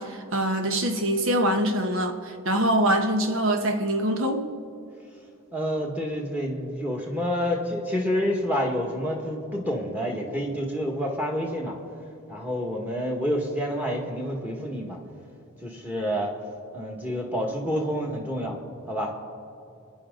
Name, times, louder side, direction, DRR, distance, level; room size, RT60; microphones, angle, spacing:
voice 1, 0.0-4.5, right 1 dB, 65° right, 1.2 m, -24 dB
voice 2, 5.5-11.8 12.3-15.0 15.6-16.3 16.7-18.6 18.9-19.1, equal, 10° right, 1.7 m, -28 dB
28.5 x 10.5 x 3.9 m
head